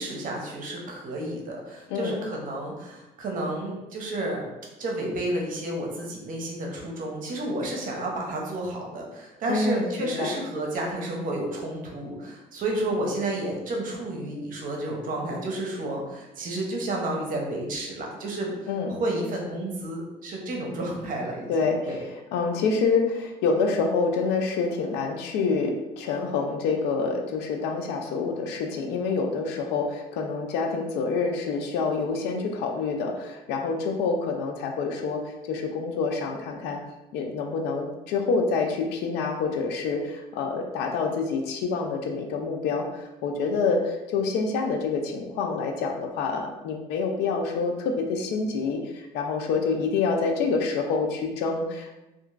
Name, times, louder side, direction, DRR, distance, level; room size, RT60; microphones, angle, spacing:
voice 1, 0.0-4.5 4.8-22.0, right 1 dB, 55° right, -1 dB, 0.7 m, -31 dB
voice 2, 9.5-10.3 18.7-18.9 21.5-22.0 22.3-36.8 37.1-52.0, left 4 dB, 90° left, 3 dB, 0.4 m, -27 dB
2.8 x 2.4 x 2.4 m, 1.0 s
cardioid pair, 110°, 17 cm